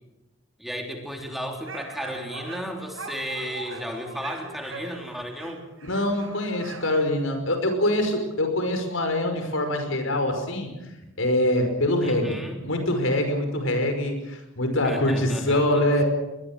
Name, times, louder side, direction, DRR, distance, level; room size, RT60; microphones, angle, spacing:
voice 1, 0.6-5.6 12.0-12.6 14.8-16.0, equal, ahead, 2 dB, 3.3 m, -34 dB
sound 1, 1.6-7.0, right 3 dB, 85° right, 6.5 m, -41 dB
voice 2, 5.8-10.7 11.2-16.0, left 1 dB, 85° left, 6 dB, 5.5 m, -24 dB
22.5 x 21.0 x 7.5 m, 1.0 s
head